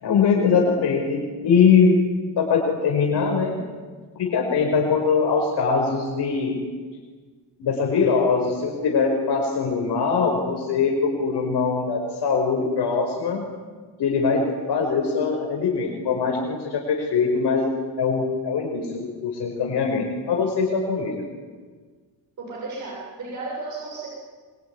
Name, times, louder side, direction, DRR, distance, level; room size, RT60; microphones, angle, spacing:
voice 1, 0.0-2.0 2.4-3.6 4.2-6.6 7.6-13.4 14.0-17.7 18.0-21.2, left 5 dB, 65° left, 0 dB, 5.3 m, -22 dB
voice 2, 22.4-24.1, right 3 dB, 40° right, -4 dB, 7.1 m, -33 dB
26.0 x 22.5 x 9.9 m, 1.5 s
cardioid pair, 175°, 44 cm